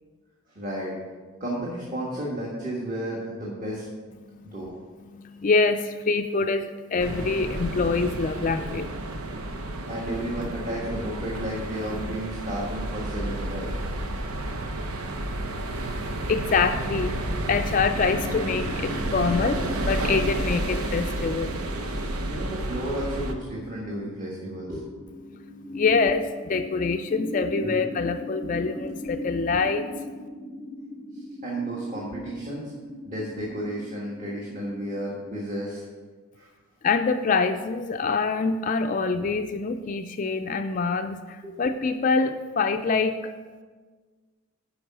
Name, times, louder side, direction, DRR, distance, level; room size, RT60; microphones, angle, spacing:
voice 1, 0.5-1.0 1.4-3.9 4.4-4.7 9.8-13.7 22.3-24.9 27.6-27.8 31.1-32.7 33.0-35.8 36.4-36.5 41.4-41.6, right 1 dB, 35° right, -5 dB, 1.5 m, -32 dB
voice 2, 4.2-4.6 5.1-8.9 16.0-21.7 25.3-30.2 36.8-43.1, left 4 dB, 35° left, 7 dB, 0.3 m, -25 dB
sound 1, 7.0-23.3, right 1 dB, 90° right, 0.9 m, -31 dB
sound 2, 17.9-35.6, left 1 dB, 15° right, 1.4 m, -39 dB
10.0 x 5.6 x 6.0 m, 1.4 s
head